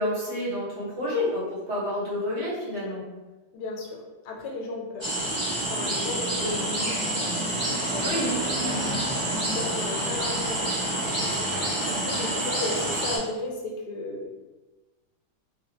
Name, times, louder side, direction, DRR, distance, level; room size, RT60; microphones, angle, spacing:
voice 1, 0.0-3.0 6.4-6.6 8.0-8.9, left 1 dB, 45° right, -9 dB, 1.3 m, -29 dB
voice 2, 3.5-5.1 5.7-7.0 7.9-8.4 9.5-14.3, left 2 dB, 80° left, 0 dB, 1.2 m, -35 dB
sound 1, 5.0-13.2, right 1 dB, 30° right, 0.5 m, -28 dB
3.0 x 2.5 x 2.7 m, 1.2 s
omnidirectional pair, 1.8 m